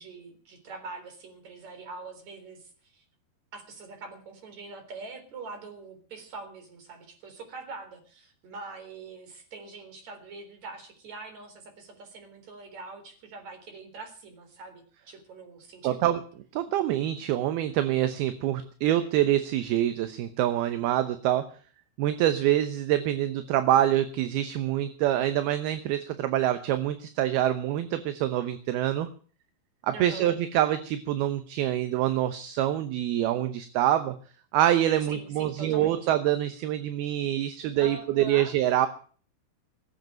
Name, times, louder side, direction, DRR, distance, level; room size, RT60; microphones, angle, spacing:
voice 1, 0.0-3.0 3.5-16.2 29.9-30.3 35.1-36.1 37.8-38.5, right 3 dB, 40° right, 6 dB, 4.8 m, -44 dB
voice 2, 15.8-16.2 16.5-21.6 22.0-29.1 29.8-34.2 34.5-38.9, right 12 dB, 70° right, 11 dB, 2.6 m, -26 dB
18.5 x 8.2 x 8.9 m, 0.43 s
omnidirectional pair, 5.1 m